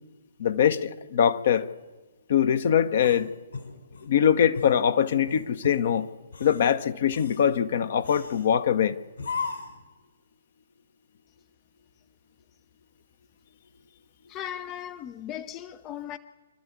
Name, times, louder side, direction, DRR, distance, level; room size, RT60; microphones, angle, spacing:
voice 1, 0.4-1.7 2.3-3.3 4.0-6.1 6.4-9.0, left 8 dB, 50° left, 0.9 m, -23 dB
sound 1, 3.0-4.1 4.5-4.8 5.3-5.8 6.2-6.7 7.1-7.5 8.0-8.5 9.2-9.8, left 4 dB, 70° left, 4.7 m, -37 dB
voice 2, 14.3-16.2, left 10 dB, 25° left, 0.6 m, -37 dB
26.0 x 12.5 x 8.4 m
figure-of-eight pair, 125°, 0 cm